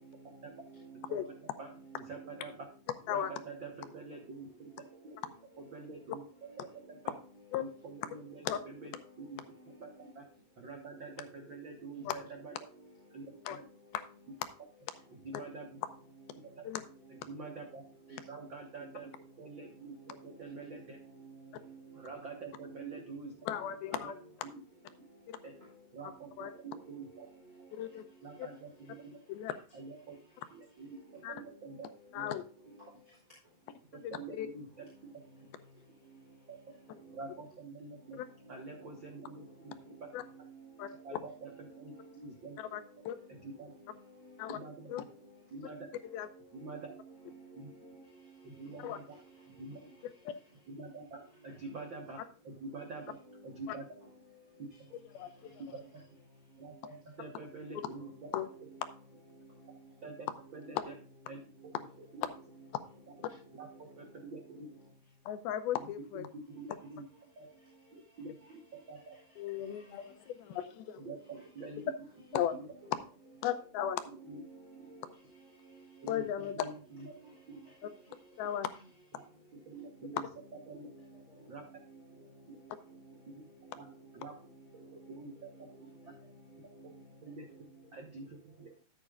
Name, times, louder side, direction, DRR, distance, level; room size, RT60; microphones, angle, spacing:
voice 1, 0.5-1.4 1.8-2.4 17.1-17.2 18.1-18.2 18.8-18.9 20.0-20.1 20.7-22.0 22.6-23.0 26.7-26.8 27.1-27.2 27.4-27.7 37.0-37.2 38.7-38.8 39.2-39.3 39.9-40.9 41.4-42.0 46.6-48.0 54.0-54.1 58.0-58.1 58.5-58.8 60.6-60.7 62.3-62.6 63.2-63.3 71.3-71.4 72.3-72.7 74.0-75.1 76.7-76.8 77.5-77.6 80.9-81.0 81.9-82.0 84.8-84.9 86.7-86.8, right 5 dB, 25° right, -6 dB, 4.4 m, -53 dB
voice 2, 2.0-2.5 3.1-4.7 5.0-5.2 5.6-6.2 6.9-7.1 7.6-10.2 10.6-12.5 13.1-13.6 15.2-15.7 16.6-16.7 17.3-17.8 18.3-19.1 19.4-21.0 21.9-23.3 24.0-24.1 24.4-24.6 25.4-25.5 25.9-26.3 26.6-27.3 28.2-29.2 29.7-30.2 30.5-31.0 31.3-31.9 32.1-32.3 33.9-34.9 37.1-38.2 38.5-40.1 41.0-42.6 43.4-43.7 44.5-44.9 45.5-45.9 46.5-46.9 47.5-47.7 48.4-49.2 49.6-49.8 50.7-53.2 53.4-53.9 55.6-55.8 56.6-58.1 60.0-60.3 60.5-60.9 61.3-61.4 61.8-61.9 63.6-64.7 66.1-66.2 66.6-67.0 67.4-67.5 67.9-68.3 68.9-69.1 71.0-71.8 74.2-74.4 76.0-77.1 77.5-77.6 79.7-80.2 80.7-80.9 81.5-81.6 83.4-83.5 83.8-83.9 84.1-84.3 84.9-85.3 86.8-86.9 87.2-87.4 87.9-88.7, right 3 dB, 85° right, 2 dB, 1.0 m, -46 dB
voice 3, 23.5-24.1 25.3-25.4 26.0-26.1 26.4-26.5 27.7-28.1 28.4-28.5 29.3-29.5 31.2-31.3 32.1-32.4 34.0-34.5 38.1-38.3 40.1-40.2 40.8-41.2 42.6-43.2 44.4-44.6 44.9-45.0 46.1-46.3 48.8-49.0 50.3-50.4 53.7-53.8 55.1-55.3 58.3-58.5 65.3-66.3 69.4-71.0 72.3-72.5 73.4-74.0 76.1-76.6 77.8-77.9 78.4-78.7, left 10 dB, 85° left, 10 dB, 2.6 m, -36 dB
13.5 x 8.3 x 2.4 m, 0.36 s
omnidirectional pair, 4.3 m